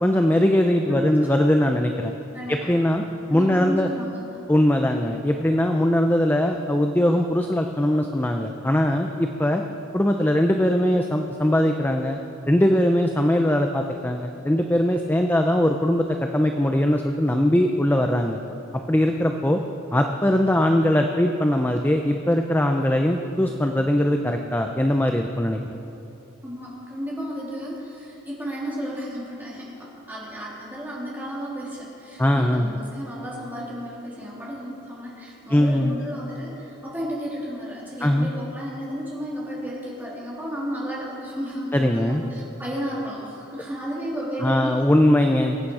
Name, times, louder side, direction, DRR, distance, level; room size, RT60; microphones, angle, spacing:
voice 1, 0.0-2.1 2.5-3.0 3.3-3.9 4.5-9.6 9.9-12.2 12.5-18.4 18.9-19.6 19.9-25.8 32.2-32.7 35.5-36.0 38.0-38.3 41.7-42.2 44.4-45.6, left 1 dB, 10° left, 4 dB, 0.5 m, -21 dB
voice 2, 2.3-2.7 3.3-4.5 26.4-45.0, equal, 10° right, -6 dB, 3.3 m, -33 dB
23.0 x 8.8 x 4.8 m, 2.8 s
head